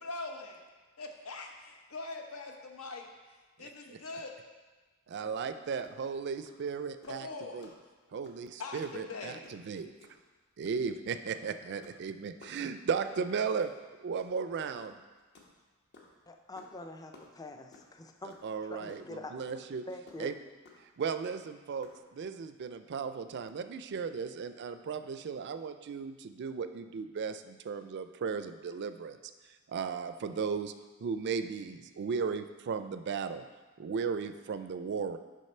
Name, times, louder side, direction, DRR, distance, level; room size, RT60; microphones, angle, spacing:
voice 1, 0.0-0.6 1.0-3.1 3.6-4.3 7.1-7.7 8.6-9.4, left 3 dB, 85° left, 3 dB, 0.8 m, -42 dB
voice 2, 3.6-4.0 5.1-7.3 7.5-7.7 8.1-9.9 10.6-13.7 14.0-15.0 18.4-19.8 20.2-20.3 20.8-29.2 29.4-30.7 31.0-33.4 33.8-35.2, right 5 dB, 55° right, 10 dB, 0.4 m, -36 dB
sound 1, 5.2-5.4 5.7-5.9 6.4-6.6 7.0-7.2 7.6-7.8 8.2-8.5 8.8-9.0 9.3-9.7 10.0-10.2 10.6-10.9 11.2-11.4 11.7-12.0 12.4-12.6 13.0-13.2 13.6-13.8 14.2-14.5 14.8-16.1 16.6-16.8 17.1-17.9 18.3-18.5 18.7-19.2 19.5-19.6 20.1-20.2 20.7-20.8 21.2-21.5 21.8-22.0, left 3 dB, 55° left, 1.1 m, -55 dB
voice 3, 16.3-18.4 18.7-19.4 19.9-20.4, left 1 dB, 20° left, 5 dB, 0.4 m, -45 dB
6.4 x 5.4 x 4.3 m, 1.3 s
head